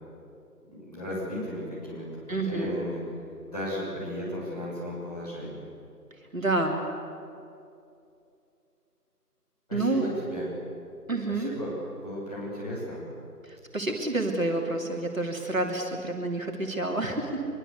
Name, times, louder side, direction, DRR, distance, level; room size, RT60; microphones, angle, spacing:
voice 1, 0.7-3.0 3.5-5.6 9.7-10.5 11.3-13.0, equal, 25° left, -7 dB, 7.3 m, -35 dB
voice 2, 2.3-2.8 6.3-6.8 9.7-10.1 11.1-11.5 13.4-17.4, right 2 dB, 55° right, 1 dB, 3.1 m, -28 dB
24.0 x 23.0 x 8.3 m, 2.6 s
figure-of-eight pair, 175°, 49 cm